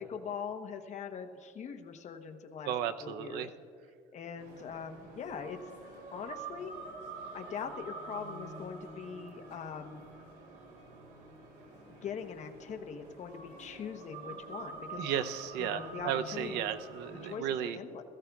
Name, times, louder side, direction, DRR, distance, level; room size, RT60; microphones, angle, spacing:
voice 1, 0.1-2.7 3.0-3.5 4.1-5.6 6.1-6.7 7.3-10.0 12.0-15.1 15.6-16.7 17.2-18.0, left 7 dB, 45° left, 5 dB, 1.0 m, -42 dB
voice 2, 2.6-3.5 15.0-17.8, right 10 dB, 85° right, 10 dB, 0.7 m, -34 dB
sound 1, 4.4-17.4, right 3 dB, 65° right, 3.4 m, -47 dB
21.0 x 15.0 x 2.4 m, 2.4 s
cardioid pair, 120°, 17 cm